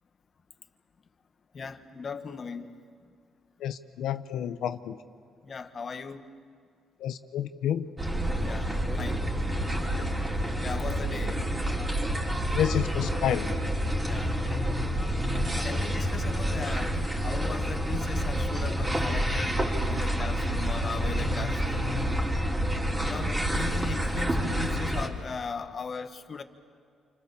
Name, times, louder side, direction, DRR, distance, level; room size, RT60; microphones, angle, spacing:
voice 1, 1.5-2.7 5.4-6.3 8.4-8.7 9.0-9.2 10.6-11.4 14.0-14.4 15.6-16.9 17.2-19.6 19.9-21.9 23.0-26.4, left 5 dB, 45° left, 1.6 m, -38 dB
voice 2, 3.6-5.0 7.0-7.9 12.6-13.5, left 10 dB, 80° left, 1.1 m, -29 dB
sound 1, 8.0-25.1, equal, 20° right, 4.0 m, -28 dB
29.0 x 25.5 x 7.1 m
cardioid pair, 90°, 0 cm